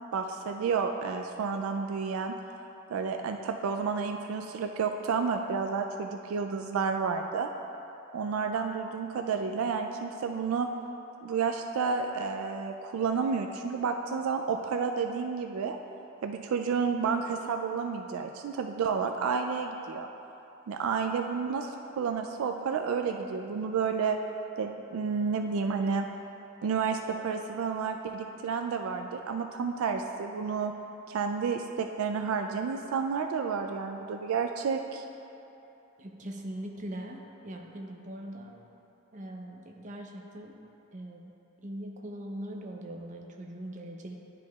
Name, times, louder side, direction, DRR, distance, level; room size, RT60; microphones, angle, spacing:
voice 1, 0.1-2.3 2.9-7.5 8.1-10.7 11.2-15.8 16.2-20.1 20.7-24.2 24.6-26.1 26.6-30.7 31.1-35.0, right 5 dB, 75° right, 5 dB, 0.3 m, -30 dB
voice 2, 36.0-38.6 39.1-40.5 40.9-41.3 41.6-44.1, right 1 dB, 35° right, 1 dB, 0.6 m, -41 dB
11.5 x 5.0 x 2.3 m, 2.9 s
head